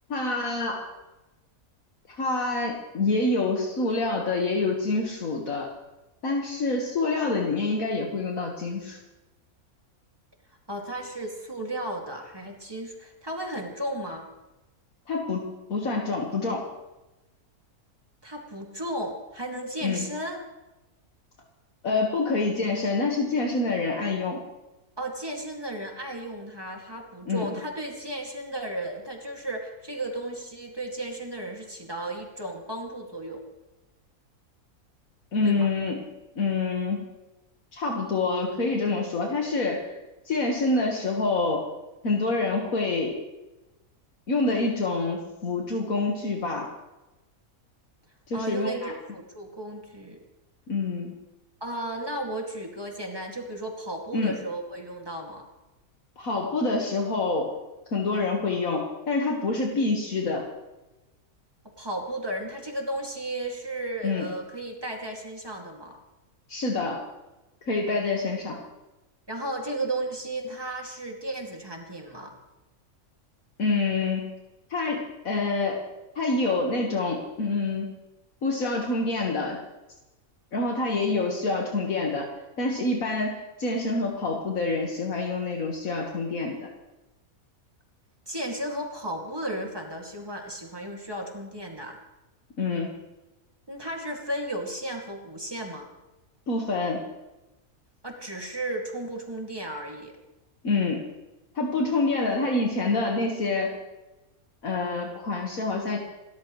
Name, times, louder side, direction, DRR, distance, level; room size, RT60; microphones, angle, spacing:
voice 1, 0.1-0.9 2.1-5.7 6.2-9.0 15.1-16.7 19.8-20.1 21.8-24.4 27.3-27.5 35.3-36.0 36.4-37.0 37.7-40.0 40.3-41.7 42.0-43.2 44.3-46.7 48.3-48.9 50.7-51.2 54.1-54.4 56.2-57.5 57.9-60.5 64.0-64.3 66.5-67.1 67.7-68.6 73.6-74.3 74.7-75.9 76.2-77.9 78.4-79.6 80.5-82.3 82.6-86.6 92.6-92.9 96.5-97.1 100.6-101.0 101.6-103.7 104.6-106.0, left 3 dB, 70° left, 0 dB, 2.0 m, -27 dB
voice 2, 10.7-14.3 18.2-20.4 25.0-33.4 35.4-35.7 48.3-50.2 51.6-55.4 61.8-66.0 69.3-72.3 88.3-92.0 93.7-95.9 98.0-100.1, right 1 dB, 15° right, 0 dB, 2.3 m, -34 dB
29.0 x 13.0 x 3.2 m, 1.0 s
omnidirectional pair, 1.5 m